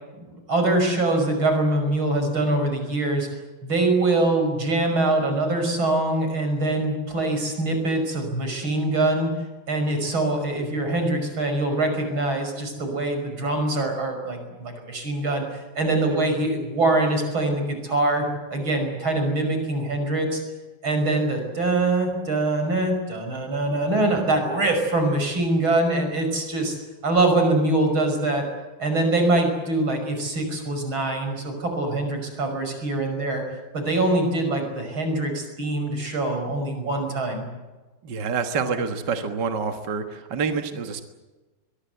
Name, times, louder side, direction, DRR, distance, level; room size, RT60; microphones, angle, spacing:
voice 1, 0.2-3.3 3.6-9.3 9.7-20.4 20.8-26.8 27.0-28.4 28.8-33.4 33.7-37.5, right 2 dB, 80° right, 5 dB, 6.5 m, -23 dB
voice 2, 38.0-41.0, right 5 dB, 60° right, 6 dB, 2.1 m, -27 dB
23.0 x 22.5 x 8.1 m, 1.2 s
omnidirectional pair, 2.2 m